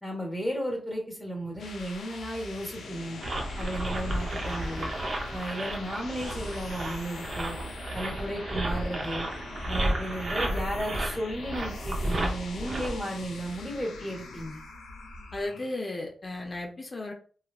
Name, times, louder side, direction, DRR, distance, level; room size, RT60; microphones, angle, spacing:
voice 1, 0.0-3.2 3.6-4.9 5.3-7.6 7.9-9.3 9.7-14.6, equal, ahead, -2 dB, 1.3 m, -34 dB
sound 1, 1.3-15.9, left 3 dB, 90° left, 0.4 m, -43 dB
sound 2, 3.2-13.1, right 1 dB, 50° right, 0.6 m, -33 dB
voice 2, 15.3-17.1, left 2 dB, 35° left, 1 dB, 0.6 m, -35 dB
3.0 x 2.3 x 2.3 m, 0.41 s
cardioid pair, 90°, 0 cm